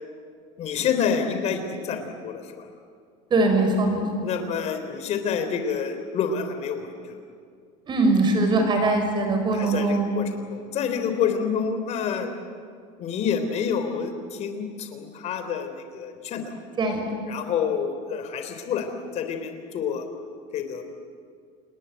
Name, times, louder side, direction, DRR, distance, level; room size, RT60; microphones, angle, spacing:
voice 1, 0.6-2.7 4.2-7.2 9.5-12.3 13.0-16.6 17.3-20.1 20.5-20.8, left 7 dB, 45° left, 7 dB, 3.6 m, -28 dB
voice 2, 3.3-4.2 7.9-10.0 16.8-17.1, right 2 dB, 30° right, 5 dB, 6.0 m, -21 dB
29.5 x 19.5 x 9.3 m, 2.2 s
cardioid pair, 145°, 16 cm